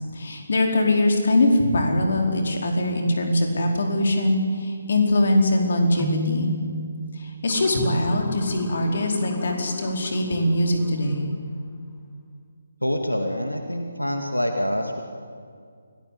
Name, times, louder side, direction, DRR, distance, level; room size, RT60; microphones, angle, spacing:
voice 1, 0.1-6.5 7.2-11.3, left 1 dB, 50° left, 2 dB, 4.6 m, -22 dB
Keyboard (musical), 6.0-7.8, left 1 dB, 5° right, 0.8 m, -31 dB
Motor vehicle (road) / Siren, 7.5-11.6, left 4 dB, 20° left, 1.8 m, -40 dB
voice 2, 12.8-15.0, equal, 90° left, 4 dB, 2.3 m, -26 dB
29.0 x 18.0 x 8.6 m, 2.2 s
figure-of-eight pair, 145°, 0 cm